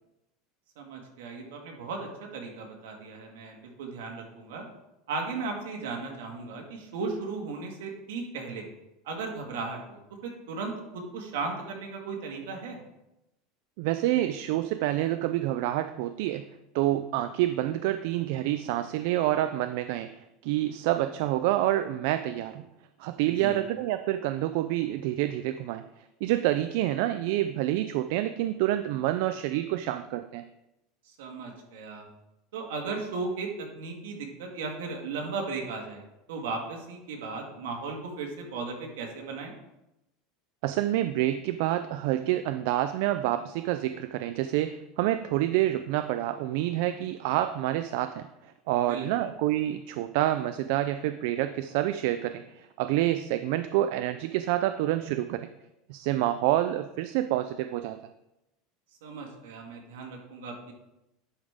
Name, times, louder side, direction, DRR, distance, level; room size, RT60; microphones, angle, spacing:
voice 1, 0.8-4.7 5.1-8.7 9.1-12.8 23.4-23.6 31.2-32.1 32.5-36.0 36.3-39.5 48.8-49.3 59.0-60.7, right 4 dB, 85° right, 1 dB, 1.9 m, -36 dB
voice 2, 13.8-16.5 16.7-20.1 20.4-22.6 23.0-25.8 26.2-30.4 40.6-55.5 55.9-58.0, right 14 dB, 65° right, 11 dB, 0.4 m, -28 dB
11.0 x 5.3 x 3.6 m, 0.90 s
supercardioid pair, 140°, 0 cm